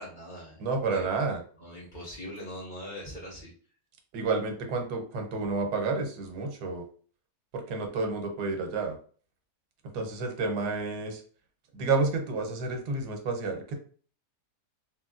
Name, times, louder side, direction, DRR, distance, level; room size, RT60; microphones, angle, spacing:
voice 1, 0.0-1.1 1.6-3.5, equal, 30° left, -5 dB, 1.4 m, -42 dB
voice 2, 0.6-1.4 4.1-6.8 7.5-9.0 9.9-11.2 11.7-13.7, right 3 dB, 85° right, 4 dB, 1.2 m, -30 dB
3.0 x 2.6 x 2.4 m, 0.43 s
omnidirectional pair, 1.7 m